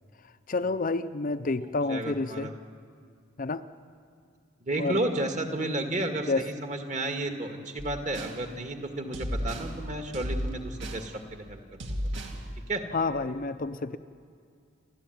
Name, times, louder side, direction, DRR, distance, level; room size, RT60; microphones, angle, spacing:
voice 1, 0.5-2.5 3.4-3.6 4.8-5.0 6.3-6.4 12.9-14.0, left 3 dB, 40° left, 10 dB, 0.6 m, -29 dB
voice 2, 1.9-2.5 4.6-11.6 11.9-12.0 12.7-12.8, right 1 dB, 35° right, 4 dB, 2.0 m, -32 dB
sound 1, 7.8-8.4 9.1-9.7 10.1-11.1 11.8-12.4, equal, 60° right, 2.6 m, -33 dB
29.0 x 13.5 x 9.3 m, 2.3 s
head